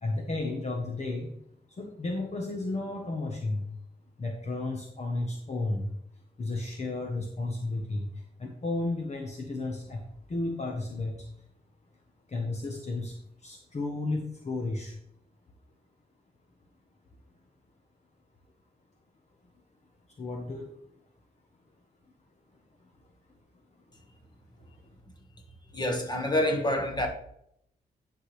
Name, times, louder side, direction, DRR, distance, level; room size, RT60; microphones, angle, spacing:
voice 1, 0.0-1.3 1.7-3.7 4.2-5.9 6.4-11.4 12.3-14.9 20.2-20.7 22.8-23.0 23.3-23.4 24.6-24.7, left 2 dB, 40° left, 1.2 m, -33 dB
voice 2, 25.7-27.1, left 1 dB, 25° left, 1.7 m, -27 dB
11.0 x 6.0 x 3.4 m
wide cardioid pair, 120°, 17 cm